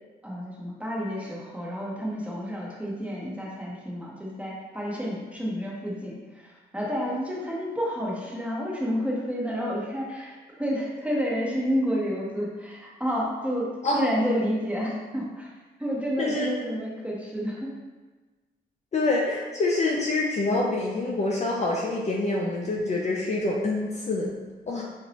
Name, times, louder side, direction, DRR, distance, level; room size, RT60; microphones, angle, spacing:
voice 1, 0.2-13.7 13.9-15.5 15.8-17.8, equal, 5° right, -4 dB, 0.7 m, -30 dB
voice 2, 18.9-24.3 24.7-24.8, left 2 dB, 35° left, -2 dB, 0.4 m, -26 dB
2.6 x 2.0 x 2.8 m, 1.3 s
supercardioid pair, 60°, 20 cm